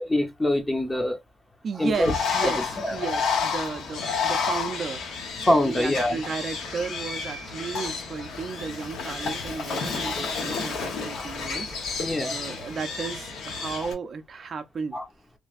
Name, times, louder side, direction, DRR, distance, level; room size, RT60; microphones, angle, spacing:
voice 1, 0.1-1.2 1.8-2.1 2.4-2.5 2.8-3.0 5.5-6.2 10.0-10.2 11.2-11.3 12.0-12.4 14.9-15.0, left 1 dB, 10° left, 0.8 m, -24 dB
voice 2, 1.6-5.3 5.6-15.0, right 5 dB, 50° right, 0.5 m, -34 dB
Bird, 1.9-13.9, left 5 dB, 70° left, 1.2 m, -31 dB
3.2 x 2.2 x 2.4 m
cardioid pair, 90°, 0 cm